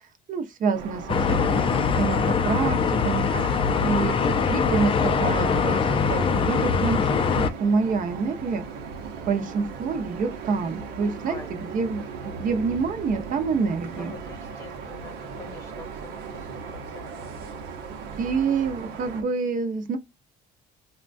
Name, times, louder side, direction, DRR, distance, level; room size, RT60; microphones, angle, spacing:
voice 1, 0.3-1.7 2.0-3.3 3.8-8.6 9.3-11.4 11.7-14.2 18.2-20.0, right 5 dB, 50° right, 0.8 m, -27 dB
sound 1, 0.7-19.2, right 5 dB, 80° right, 0.9 m, -38 dB
sound 2, 1.1-7.5, left 6 dB, 30° left, 0.4 m, -23 dB
voice 2, 14.0-17.3, left 2 dB, 15° left, 0.9 m, -43 dB
3.7 x 2.3 x 2.5 m
cardioid pair, 105°, 18 cm